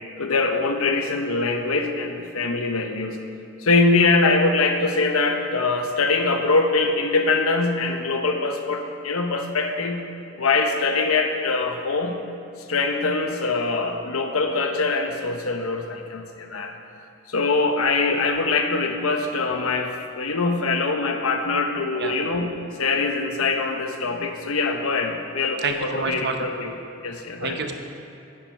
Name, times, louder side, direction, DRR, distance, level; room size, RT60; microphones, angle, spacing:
voice 1, 0.2-3.2 3.6-10.0 10.4-12.2 12.7-16.7 17.3-26.7 27.0-27.6, left 3 dB, 80° left, 5 dB, 1.0 m, -23 dB
voice 2, 25.6-26.5 27.4-27.7, right 4 dB, 50° right, 4 dB, 0.9 m, -28 dB
9.5 x 9.1 x 5.4 m, 2.7 s
head